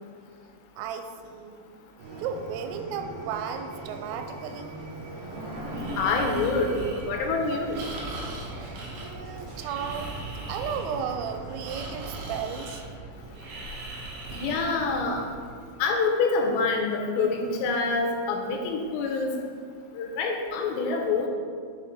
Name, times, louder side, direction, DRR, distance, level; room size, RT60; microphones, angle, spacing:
voice 1, 0.8-1.7 2.2-4.7 9.0-12.8, right 7 dB, 90° right, 7 dB, 3.3 m, -34 dB
sound 1, 2.0-12.4, right 2 dB, 50° right, 3.2 m, -41 dB
Breathing, 5.7-15.4, right 2 dB, 70° right, 2.6 m, -39 dB
voice 2, 6.0-6.7 7.0-7.8 14.3-15.3 15.8-19.4 19.9-21.3, left 4 dB, 90° left, 2 dB, 3.5 m, -26 dB
8.5 x 6.6 x 3.7 m, 2.1 s
omnidirectional pair, 5.8 m